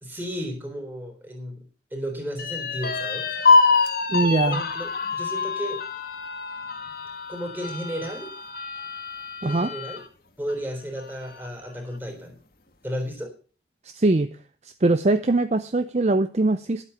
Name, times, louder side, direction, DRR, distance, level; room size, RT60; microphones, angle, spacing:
voice 1, 0.0-1.6 1.9-3.3 4.2-5.8 7.3-8.3 9.4-10.0 10.4-12.4 12.8-13.3, equal, 10° right, 3 dB, 3.5 m, -33 dB
sound 1, 2.4-10.0 10.5-10.6 11.0-11.6, left 4 dB, 55° left, 1.5 m, -25 dB
voice 2, 4.1-4.6 9.4-9.7 13.8-14.3 14.8-16.8, right 2 dB, 35° right, 10 dB, 0.5 m, -22 dB
11.5 x 8.5 x 6.8 m, 0.38 s
head